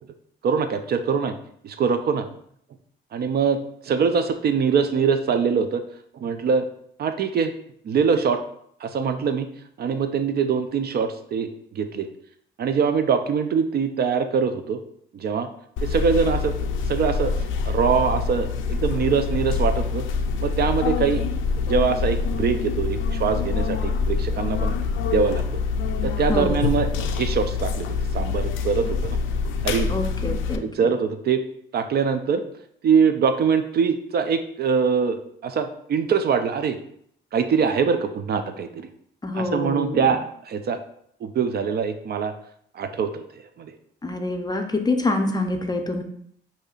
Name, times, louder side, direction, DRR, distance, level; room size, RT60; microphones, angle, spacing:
voice 1, 0.4-1.3 1.6-2.3 3.1-5.8 6.1-6.7 7.0-7.5 7.8-8.4 8.8-9.5 9.8-12.1 12.6-14.8 15.1-15.5 15.8-17.3 17.7-20.0 20.4-21.2 21.7-24.7 25.1-25.4 26.0-26.9 27.1-29.2 29.6-29.9 30.7-31.4 31.7-32.4 32.8-36.8 37.3-38.9 39.3-40.8 41.2-42.3 42.7-43.7, right 6 dB, 55° right, 8 dB, 0.4 m, -23 dB
sound 1, 15.8-30.6, left 5 dB, 85° left, 0.4 m, -25 dB
voice 2, 26.3-26.6 29.9-30.6 39.2-40.1 44.0-46.0, left 2 dB, 20° left, 5 dB, 0.5 m, -26 dB
6.4 x 2.7 x 2.4 m, 0.67 s
cardioid pair, 90°, 20 cm